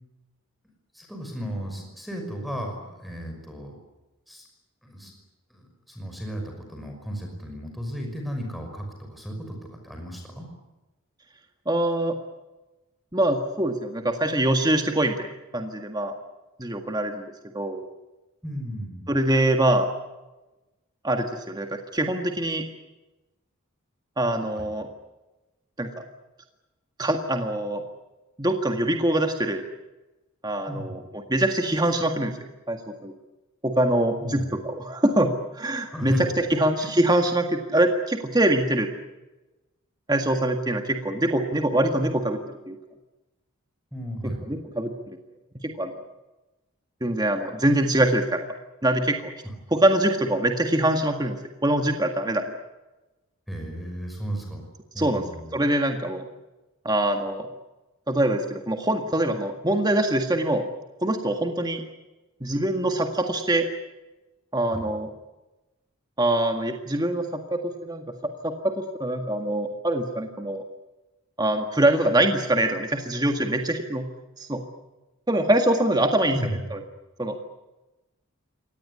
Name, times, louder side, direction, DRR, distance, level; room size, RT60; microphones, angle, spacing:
voice 1, 0.9-3.8 4.3-4.5 4.8-5.1 5.5-10.5 18.4-19.1 24.5-24.6 30.7-31.0 34.2-34.5 35.9-36.2 36.8-36.9 43.9-44.4 53.5-54.6 54.9-55.5 64.7-64.8 76.3-76.6, equal, ahead, 2 dB, 5.8 m, -34 dB
voice 2, 11.7-12.2 13.1-15.2 15.5-16.2 16.6-17.8 19.1-19.9 21.0-22.6 24.2-24.9 25.8-25.9 27.0-27.8 28.4-29.6 30.4-32.4 32.7-33.1 33.6-38.9 40.1-42.4 42.7-42.8 44.5-44.9 45.6-46.0 47.0-48.5 48.8-49.3 49.7-52.5 55.0-55.2 55.5-56.2 56.9-57.5 58.1-60.7 61.0-61.8 62.4-63.7 64.5-65.1 66.2-70.6 71.4-74.1 74.4-74.6 75.3-76.4 76.7-76.8 77.2-77.4, right 1 dB, 20° right, 4 dB, 1.8 m, -24 dB
25.0 x 19.0 x 9.8 m, 1.1 s
head